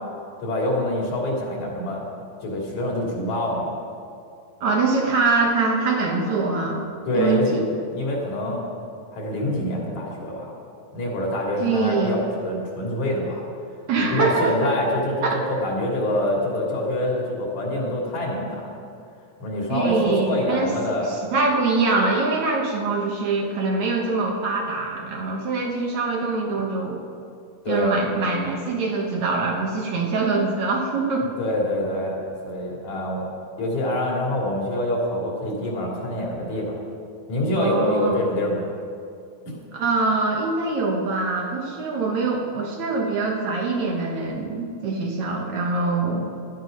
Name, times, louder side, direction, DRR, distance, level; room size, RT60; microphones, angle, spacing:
voice 1, 0.4-2.1 2.4-3.7 7.1-7.6 7.9-8.6 9.1-10.5 10.9-13.4 14.0-18.8 19.4-21.1 27.7-27.9 31.4-33.2 33.6-36.7 37.3-38.7 39.5-39.6, left 1 dB, 60° left, -2 dB, 4.0 m, -25 dB
voice 2, 4.6-6.8 7.1-7.7 11.6-12.2 13.9-14.7 15.2-15.4 19.7-27.0 27.7-31.3 37.6-38.2 39.7-46.3, right 3 dB, 60° right, 0 dB, 2.4 m, -24 dB
16.5 x 12.0 x 5.2 m, 2.4 s
omnidirectional pair, 3.9 m